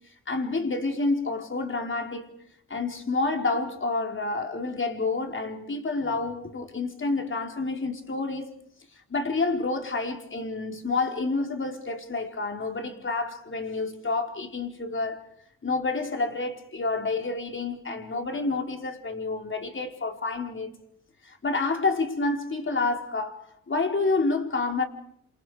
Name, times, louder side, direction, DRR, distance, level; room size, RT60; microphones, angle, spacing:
voice 1, 0.3-2.3 2.7-8.5 8.9-15.2 15.6-20.7 21.2-24.8, left 3 dB, 40° left, 4.5 m, -29 dB
28.5 x 27.5 x 5.1 m
cardioid pair, 60°, 32 cm